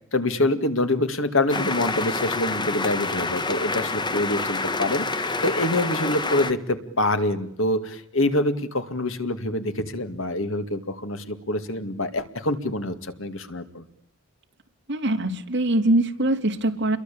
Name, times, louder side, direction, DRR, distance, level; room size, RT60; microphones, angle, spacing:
voice 1, 0.1-13.8, left 1 dB, 65° left, 9 dB, 2.2 m, -25 dB
sound 1, 1.5-6.5, left 3 dB, 20° left, 1.3 m, -27 dB
voice 2, 14.9-17.0, right 1 dB, 55° right, 4 dB, 3.5 m, -22 dB
30.0 x 23.0 x 8.6 m, 0.73 s
head